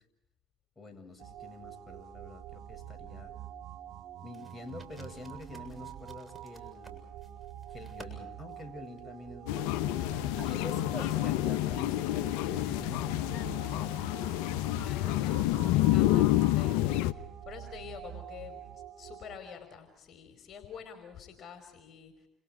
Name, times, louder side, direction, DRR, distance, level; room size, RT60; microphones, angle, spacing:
voice 1, 0.8-3.3 4.2-7.1 7.7-9.8 10.1-14.0, left 2 dB, 20° left, 5 dB, 7.5 m, -48 dB
sound 1, 1.2-19.4, right 11 dB, 65° right, 1.7 m, -46 dB
sound 2, 4.3-11.5, equal, 15° right, 7.5 m, -50 dB
sound 3, 9.5-17.1, left 16 dB, 80° left, 0.8 m, -28 dB
voice 2, 11.0-11.5 14.8-22.3, left 7 dB, 50° left, 5 dB, 5.1 m, -48 dB
29.5 x 28.5 x 4.9 m, 0.90 s
hypercardioid pair, 70°, 0 cm